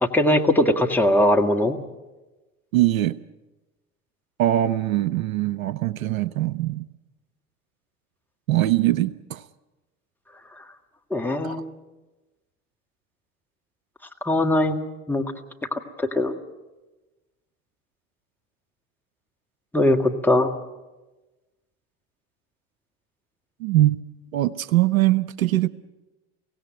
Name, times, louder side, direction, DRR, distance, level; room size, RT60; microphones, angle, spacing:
voice 1, 0.0-1.8 10.6-10.7 11.1-11.6 14.2-14.8 15.1-15.2 15.7-16.3 19.7-20.5, left 1 dB, 5° left, 2 dB, 1.8 m, -20 dB
voice 2, 2.7-3.2 4.4-6.8 8.5-9.4 11.4-11.6 23.6-24.0 24.3-25.7, right 15 dB, 80° right, 19 dB, 0.6 m, -22 dB
24.0 x 17.0 x 7.7 m, 1.1 s
figure-of-eight pair, 65°, 41 cm